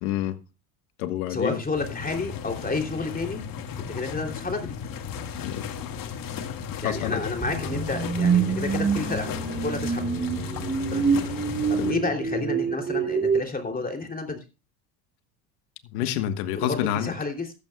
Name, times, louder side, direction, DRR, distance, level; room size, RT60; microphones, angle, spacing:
voice 1, 0.0-0.4 1.0-1.6 5.4-5.7 6.8-7.2 11.8-11.9 15.9-17.1, left 12 dB, 80° left, 1.4 m, -28 dB
voice 2, 1.3-3.4 3.8-4.8 6.8-9.3 9.6-10.0 10.9-11.0 11.7-14.4 16.5-17.5, left 3 dB, 20° left, 3.1 m, -30 dB
sound 1, 1.8-11.9, left 7 dB, 50° left, 1.9 m, -35 dB
sound 2, 7.4-13.4, right 6 dB, 20° right, 1.6 m, -26 dB
14.5 x 12.5 x 2.3 m
supercardioid pair, 90°, 44 cm